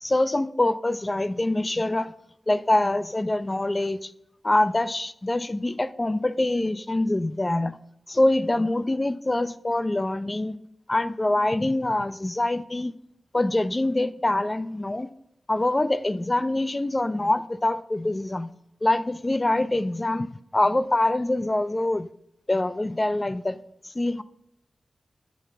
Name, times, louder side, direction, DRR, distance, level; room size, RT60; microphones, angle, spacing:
voice 1, 0.0-2.1 2.5-4.1 4.4-7.8 8.1-10.6 10.9-12.9 13.3-15.1 15.5-18.5 18.8-22.1 22.5-23.6 23.8-24.2, left 1 dB, 30° left, 14 dB, 0.3 m, -24 dB
8.3 x 3.3 x 3.8 m, 0.78 s
cardioid pair, 55°, 0 cm